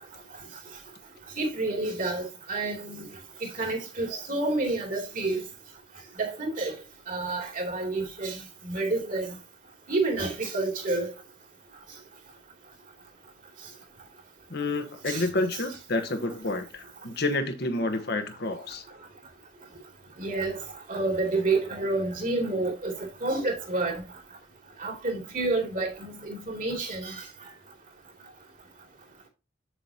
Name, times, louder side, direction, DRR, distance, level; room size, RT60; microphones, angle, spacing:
voice 1, 1.4-3.1 3.4-5.4 6.2-6.8 7.1-9.3 9.9-11.1 15.1-15.3 20.2-20.6 20.9-24.0 24.8-27.2, right 2 dB, 45° right, 2.7 m, -29 dB
voice 2, 14.5-18.8, left 2 dB, 60° left, 1.2 m, -29 dB
7.6 x 7.1 x 2.8 m
head